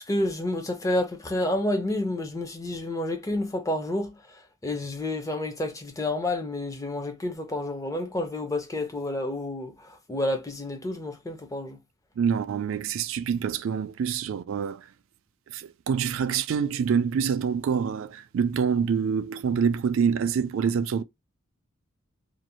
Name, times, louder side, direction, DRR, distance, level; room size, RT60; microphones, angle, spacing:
voice 1, 0.1-11.8, left 1 dB, 15° left, 0.4 m, -29 dB
voice 2, 12.2-14.8 15.5-21.0, right 6 dB, 65° right, 0.3 m, -26 dB
2.5 x 2.0 x 2.8 m
head